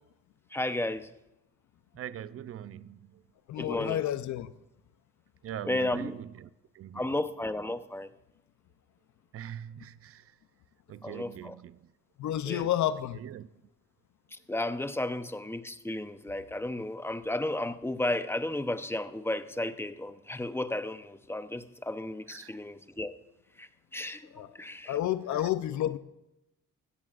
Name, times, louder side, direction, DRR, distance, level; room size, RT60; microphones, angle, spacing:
voice 1, 0.5-1.1 3.6-4.1 5.7-6.1 6.9-8.1 11.0-11.5 12.4-12.6 14.5-23.1 23.6-24.3 24.5-25.0, left 1 dB, 10° left, 0.8 m, -33 dB
voice 2, 1.9-3.2 5.4-6.5 6.7-7.1 9.3-10.4 10.9-11.9 13.1-13.5 22.3-22.5 25.3-25.5, right 10 dB, 50° right, 0.5 m, -42 dB
voice 3, 3.5-4.5 12.2-13.2 24.3-24.5 24.9-26.0, left 12 dB, 70° left, 0.7 m, -30 dB
17.0 x 14.0 x 2.5 m
cardioid pair, 90°, 30 cm